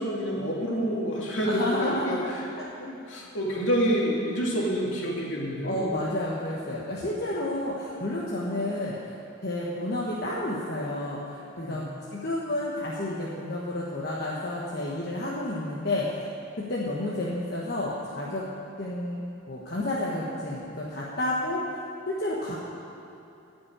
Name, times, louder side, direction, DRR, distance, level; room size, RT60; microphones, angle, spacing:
voice 1, 0.0-2.5 2.8-5.9 11.6-11.8, equal, 70° left, -3 dB, 2.5 m, -28 dB
voice 2, 1.4-2.2 2.6-2.7 5.6-9.1 9.4-11.8 12.1-16.2 16.6-18.5 18.8-22.5, left 1 dB, 50° left, -6 dB, 1.3 m, -30 dB
14.5 x 6.1 x 8.8 m, 2.9 s
head